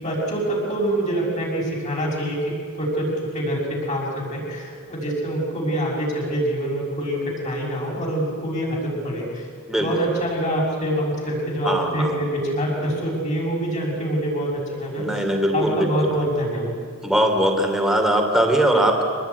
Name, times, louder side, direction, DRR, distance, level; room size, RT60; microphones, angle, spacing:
voice 1, 0.0-2.4 2.8-9.5 9.8-15.3 15.5-16.8, right 1 dB, 30° left, -2 dB, 6.4 m, -25 dB
voice 2, 9.7-10.0 11.6-12.2 15.0-15.9 17.0-19.0, right 1 dB, ahead, 3 dB, 2.9 m, -20 dB
24.5 x 20.0 x 9.5 m, 2.2 s
head